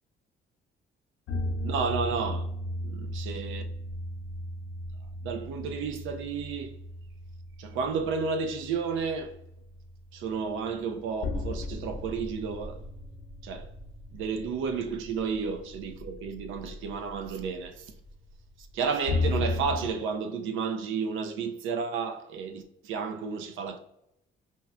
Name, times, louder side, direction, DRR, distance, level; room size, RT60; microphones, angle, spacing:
sound 1, 1.3-19.9, left 2 dB, 75° left, 0.6 m, -36 dB
voice 1, 1.6-2.5 2.8-3.6 5.2-6.8 7.6-9.4 10.1-12.8 13.4-13.7 14.1-17.9 18.6-23.8, right 5 dB, 85° right, 0.4 m, -32 dB
5.4 x 2.2 x 2.4 m
cardioid pair, 90°, 20 cm